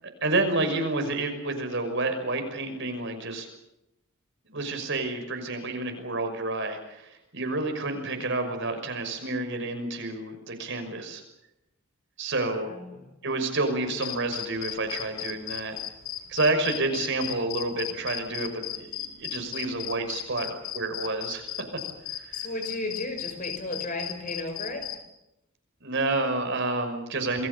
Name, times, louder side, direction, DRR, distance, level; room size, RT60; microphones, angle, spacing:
voice 1, 0.2-3.5 4.5-11.2 12.2-12.7 13.2-15.8 16.3-21.5 22.1-22.5 25.8-27.5, right 2 dB, 55° right, 6 dB, 5.9 m, -29 dB
voice 2, 12.7-13.0 22.4-24.8, left 2 dB, 40° left, 6 dB, 5.6 m, -34 dB
sound 1, 13.8-25.0, left 13 dB, 75° left, 3.0 m, -35 dB
28.5 x 21.5 x 7.1 m, 0.87 s
head